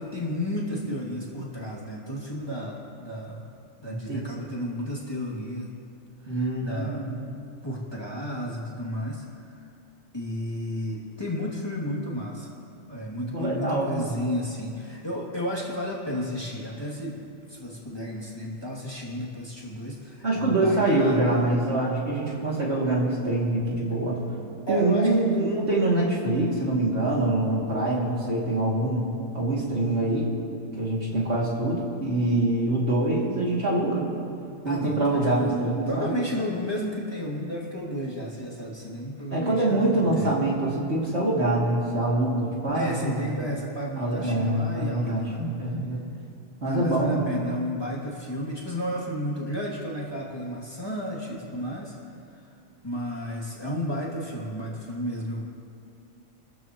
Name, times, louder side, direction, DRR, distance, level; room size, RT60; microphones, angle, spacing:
voice 1, 0.0-3.4 3.8-5.7 6.2-7.0 7.6-9.6 10.1-12.5 12.9-17.2 17.5-21.2 24.7-25.5 34.6-35.6 35.9-40.4 42.7-45.4 46.6-52.0 52.3-52.5 52.8-55.4, equal, 20° left, -5 dB, 2.6 m, -32 dB
voice 2, 3.9-4.2 6.2-7.2 13.3-14.0 20.2-24.2 24.7-29.1 29.3-30.3 30.7-34.1 34.6-36.1 39.3-43.3 44.0-46.0 46.6-47.2, right 2 dB, 55° right, -5 dB, 2.9 m, -25 dB
29.0 x 14.5 x 3.1 m, 2.5 s
omnidirectional pair, 1.4 m